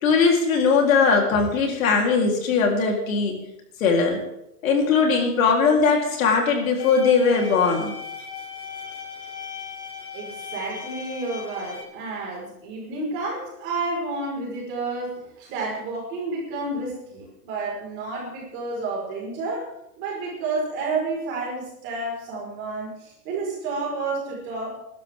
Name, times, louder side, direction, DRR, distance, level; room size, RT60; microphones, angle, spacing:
voice 1, 0.0-3.4 3.8-4.2 4.6-7.9, left 5 dB, 60° left, 0 dB, 3.9 m, -20 dB
sound 1, 6.8-11.8, left 6 dB, 85° left, 4.9 m, -37 dB
voice 2, 10.1-19.7 20.0-24.7, right 3 dB, 25° right, -2 dB, 5.2 m, -30 dB
23.0 x 12.5 x 3.7 m, 0.83 s
supercardioid pair, 180°, 46 cm